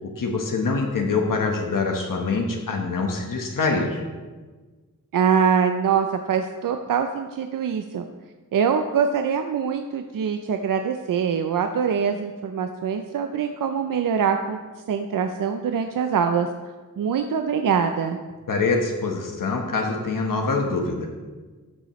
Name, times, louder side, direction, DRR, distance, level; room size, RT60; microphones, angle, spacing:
voice 1, 0.0-4.0 18.5-21.1, left 4 dB, 80° left, 2 dB, 1.2 m, -24 dB
voice 2, 5.1-8.0 8.5-14.6 14.9-16.5 17.0-18.2, right 7 dB, 80° right, 6 dB, 0.5 m, -23 dB
13.5 x 6.9 x 3.1 m, 1.4 s
wide cardioid pair, 105°, 32 cm